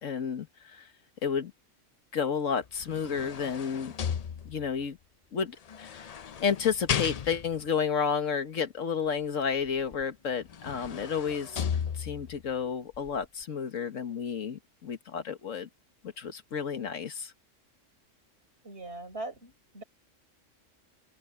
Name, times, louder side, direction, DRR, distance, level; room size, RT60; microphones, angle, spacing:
voice 1, 0.0-0.9 1.2-1.5 2.1-3.9 4.5-5.0 5.3-6.1 6.4-11.6 12.0-15.7 16.0-17.3, left 6 dB, 85° left, 1.8 m, -31 dB
sound 1, 2.6-4.8 5.7-7.7 9.9-10.0 10.4-12.4 12.9-13.1, left 8 dB, 55° left, 0.4 m, -35 dB
voice 2, 18.6-19.8, right 2 dB, 55° right, 5.3 m, -40 dB
open air
omnidirectional pair, 1.3 m